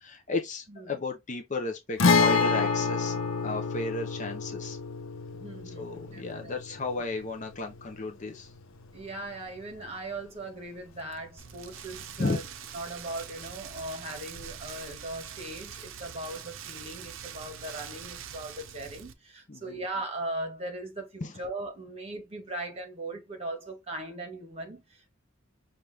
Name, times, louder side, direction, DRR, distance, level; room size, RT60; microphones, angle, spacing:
voice 1, 0.0-3.1 3.4-4.8 5.8-8.5 12.2-12.4 19.5-19.8 21.2-21.3, left 3 dB, 35° left, 0.7 m, -34 dB
Guitar, 2.0-9.6 9.9-10.0 12.0-12.1, left 4 dB, 75° left, 0.7 m, -28 dB
voice 2, 5.3-6.5 7.0-7.1 8.9-12.4 12.7-25.1, right 2 dB, 30° right, 1.5 m, -39 dB
Rain, 11.4-19.1, right 8 dB, 65° right, 0.6 m, -43 dB
5.9 x 2.5 x 3.4 m
head